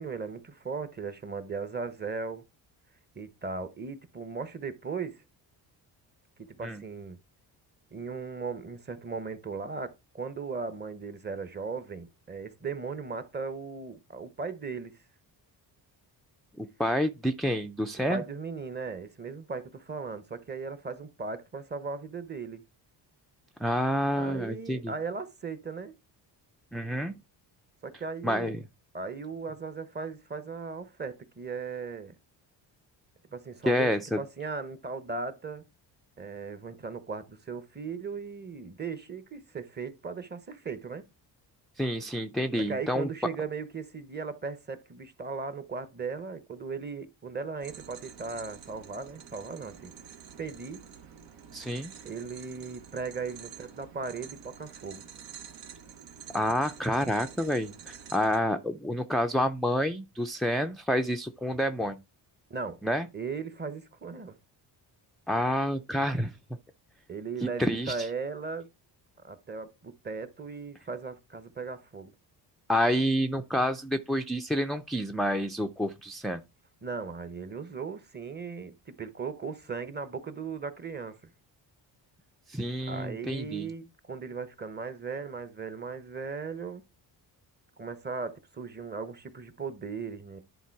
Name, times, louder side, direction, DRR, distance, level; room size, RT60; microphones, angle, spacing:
voice 1, 0.0-2.4 3.1-5.2 6.4-7.2 7.9-15.0 18.1-22.6 24.1-26.0 27.8-28.6 28.9-32.1 33.3-35.6 36.2-41.0 42.6-49.9 50.4-50.8 52.0-55.0 62.5-62.8 63.1-64.4 67.1-68.7 69.2-72.1 76.8-81.2 82.9-86.8 87.8-90.4, right 4 dB, 25° right, 0.8 m, -37 dB
voice 2, 16.6-18.2 23.6-24.9 26.7-27.1 28.2-28.6 33.7-34.2 41.8-43.1 51.5-51.9 56.3-62.0 62.8-63.1 65.3-66.3 67.4-68.1 72.7-76.4 82.5-83.7, equal, ahead, 0.3 m, -28 dB
sound 1, 47.6-58.4, right 8 dB, 80° right, 1.2 m, -48 dB
10.0 x 3.8 x 4.6 m
cardioid pair, 110°, 44 cm